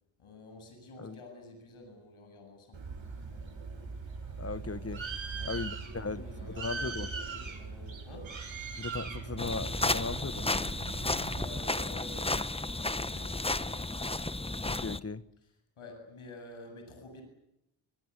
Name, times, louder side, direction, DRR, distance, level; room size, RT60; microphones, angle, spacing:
voice 1, 0.2-2.8 5.3-8.4 11.2-13.8 15.8-17.2, left 2 dB, 85° left, 7.8 m, -50 dB
Bird, 2.7-11.7, right 4 dB, 65° right, 7.3 m, -40 dB
voice 2, 4.4-5.1 5.4-7.1 8.8-10.5 14.6-15.2, left 4 dB, 30° left, 1.3 m, -37 dB
sound 1, 9.4-15.0, left 2 dB, 10° left, 1.1 m, -33 dB
24.5 x 23.5 x 8.3 m
cardioid pair, 50°, 49 cm